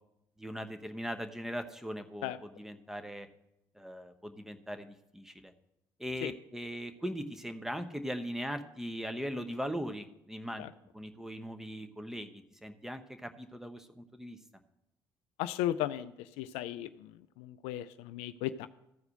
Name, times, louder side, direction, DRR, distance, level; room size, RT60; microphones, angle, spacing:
voice 1, 0.4-3.3 3.8-5.5 6.0-10.6 10.9-14.4, equal, 5° right, 8 dB, 1.0 m, -40 dB
voice 2, 15.4-18.7, left 13 dB, 65° left, 14 dB, 0.4 m, -36 dB
14.0 x 4.8 x 6.4 m, 0.85 s
hypercardioid pair, 50°, 11 cm